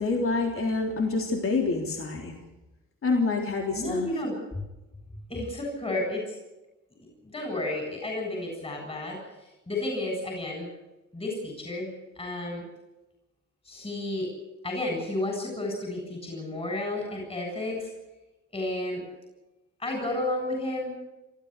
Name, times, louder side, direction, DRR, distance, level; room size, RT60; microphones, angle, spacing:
voice 1, 0.0-2.4 3.0-4.1, left 3 dB, 45° left, 2 dB, 3.6 m, -27 dB
voice 2, 3.8-4.3 5.3-6.4 7.2-10.7 11.1-12.6 13.6-14.3 14.6-17.9 18.5-19.0 19.8-21.0, left 2 dB, 20° left, 1 dB, 7.8 m, -32 dB
26.5 x 14.0 x 8.4 m, 1.0 s
cardioid pair, 90°, 30 cm